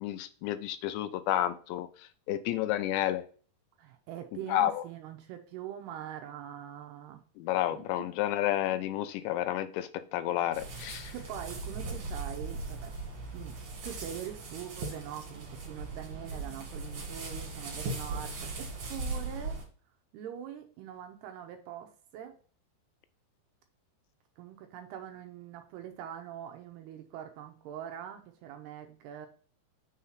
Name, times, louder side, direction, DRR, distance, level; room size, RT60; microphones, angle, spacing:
voice 1, 0.0-1.9 2.3-3.2 4.5-4.8 7.4-11.1, left 13 dB, 85° left, 11 dB, 2.7 m, -30 dB
voice 2, 3.8-7.2 7.7-8.1 11.1-12.9 13.3-19.6 20.1-22.3 24.4-29.3, right 10 dB, 80° right, 6 dB, 2.5 m, -43 dB
sound 1, 10.5-19.6, right 3 dB, 55° right, 2.8 m, -39 dB
6.4 x 4.3 x 5.7 m, 0.42 s
omnidirectional pair, 5.2 m